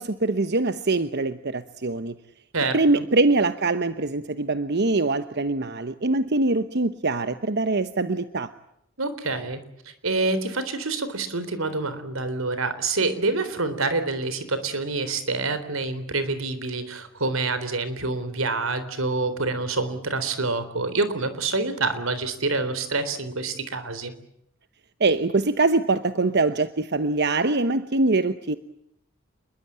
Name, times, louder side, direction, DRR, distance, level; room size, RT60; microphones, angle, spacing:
voice 1, 0.0-2.1 2.7-8.5 25.0-28.6, right 3 dB, 55° right, 11 dB, 1.0 m, -23 dB
voice 2, 9.0-24.1, right 3 dB, 85° right, 12 dB, 3.8 m, -27 dB
28.0 x 22.0 x 8.8 m, 0.76 s
head